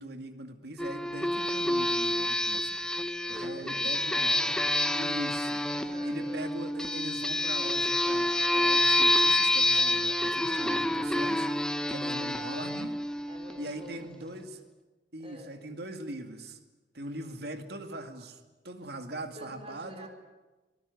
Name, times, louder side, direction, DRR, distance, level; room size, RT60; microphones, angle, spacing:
voice 1, 0.0-2.7 3.3-4.6 4.9-5.6 6.0-12.9 13.6-14.6 15.1-16.6 16.9-20.1, right 1 dB, 65° right, 6 dB, 2.3 m, -41 dB
sound 1, 0.8-14.0, left 1 dB, 5° left, 1.0 m, -28 dB
voice 2, 3.3-4.6 5.7-6.7 11.8-12.9 13.3-14.6 15.2-15.6 19.3-20.1, equal, 35° right, 4 dB, 4.4 m, -49 dB
24.0 x 20.0 x 9.7 m, 1.2 s
head